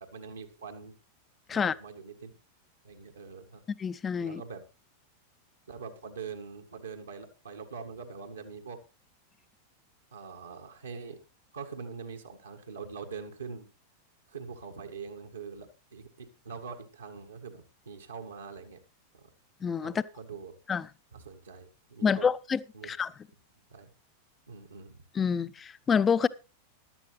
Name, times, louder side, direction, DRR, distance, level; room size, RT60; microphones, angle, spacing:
voice 1, 0.1-0.9 1.5-2.3 2.8-3.6 4.2-4.6 5.7-8.8 10.1-11.2 11.5-13.7 14.3-18.8 19.1-19.3 19.8-20.6 21.1-22.3 22.7-22.9 23.7-23.9 24.5-25.0, right 5 dB, 75° right, 1.6 m, -43 dB
voice 2, 3.8-4.4 19.6-19.9 20.7-20.9 22.0-23.1 25.1-26.3, left 6 dB, 20° left, 0.6 m, -27 dB
15.0 x 11.5 x 3.2 m
figure-of-eight pair, 90°, 0 cm